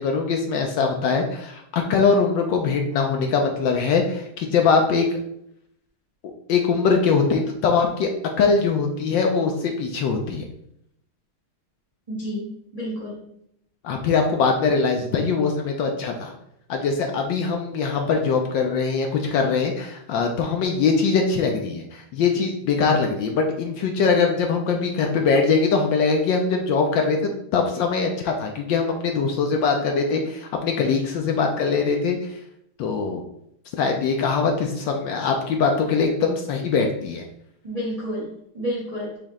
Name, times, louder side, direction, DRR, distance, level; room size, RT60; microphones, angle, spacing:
voice 1, 0.0-5.1 6.5-8.1 8.4-10.5 13.8-16.3 16.7-32.4 32.8-33.2 33.8-37.3, left 5 dB, 70° left, 3 dB, 1.2 m, -22 dB
voice 2, 12.1-13.2 37.6-39.2, equal, 30° right, -5 dB, 0.6 m, -30 dB
5.2 x 2.8 x 3.6 m, 0.75 s
omnidirectional pair, 2.3 m